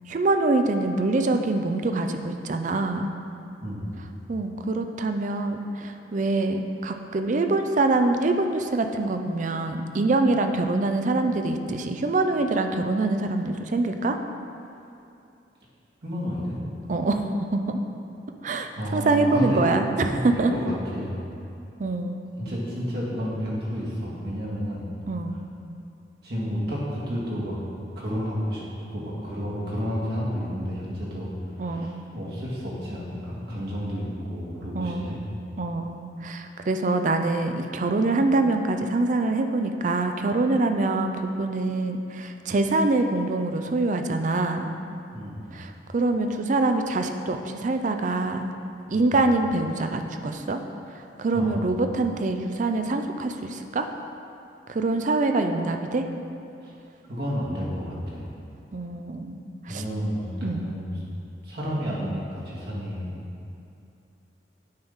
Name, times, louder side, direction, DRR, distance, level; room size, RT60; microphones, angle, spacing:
voice 1, 0.1-3.1 4.3-14.2 16.9-17.8 18.4-20.5 21.8-22.4 25.1-25.4 31.6-32.0 34.7-35.3 35.6-44.7 45.5-48.5 48.9-50.6 50.9-53.9 54.7-56.0 58.7-59.8 60.4-60.7, right 2 dB, 45° right, 6 dB, 0.4 m, -25 dB
voice 2, 16.0-16.6 18.7-19.6 20.1-20.6 20.9-21.1 22.4-24.9 26.2-27.6 27.9-28.6 28.9-31.3 31.6-35.2 45.1-45.5 48.9-49.1 51.3-51.6 56.6-56.7 57.1-58.3 59.7-61.0 61.4-63.1, equal, 65° right, -6 dB, 1.8 m, -31 dB
8.8 x 3.6 x 5.5 m, 2.6 s
head